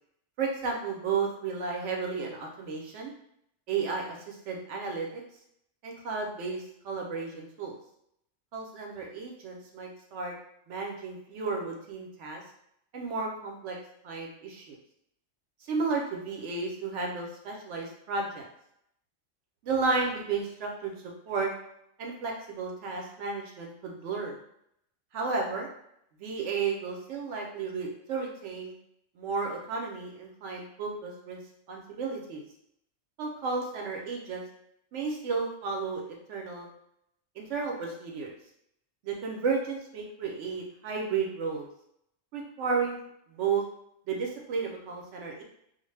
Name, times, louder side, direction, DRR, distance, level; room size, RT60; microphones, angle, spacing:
voice 1, 0.4-3.1 3.7-5.1 5.8-7.8 8.5-10.3 10.7-12.4 12.9-13.8 14.0-14.8 15.7-18.5 19.6-21.5 22.0-24.4 25.1-25.7 26.2-28.7 29.2-31.4 31.7-32.4 33.2-34.4 34.9-36.7 37.4-38.3 39.0-41.7 42.3-43.0 43.3-43.6 44.1-45.4, right 4 dB, 70° right, 0 dB, 0.9 m, -33 dB
2.4 x 2.1 x 3.2 m, 0.74 s
omnidirectional pair, 1.3 m